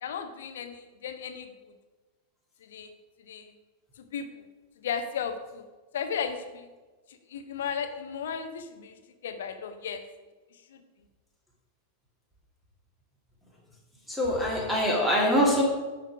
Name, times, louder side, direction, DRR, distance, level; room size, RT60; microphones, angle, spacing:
voice 1, 0.0-1.5 2.6-2.9 3.2-3.5 4.0-4.3 4.8-5.7 5.9-6.7 7.1-8.9 9.2-10.0 10.7-10.8, left 7 dB, 60° left, 8 dB, 1.0 m, -35 dB
voice 2, 14.1-15.6, equal, ahead, -3 dB, 2.5 m, -24 dB
10.5 x 5.3 x 6.1 m, 1.3 s
figure-of-eight pair, 90°, 0 cm